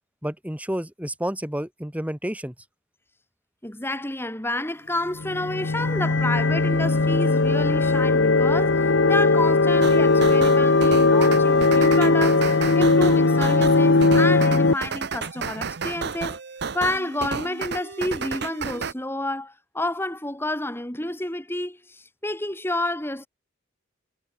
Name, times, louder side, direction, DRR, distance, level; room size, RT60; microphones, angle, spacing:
voice 1, 0.2-2.5, equal, 5° right, 1.7 m, -30 dB
voice 2, 3.6-16.4 16.7-23.3, left 1 dB, 10° left, 2.8 m, -29 dB
sound 1, 5.2-14.7, left 3 dB, 65° left, 1.0 m, -19 dB
sound 2, 9.8-18.9, right 5 dB, 55° right, 0.9 m, -32 dB
head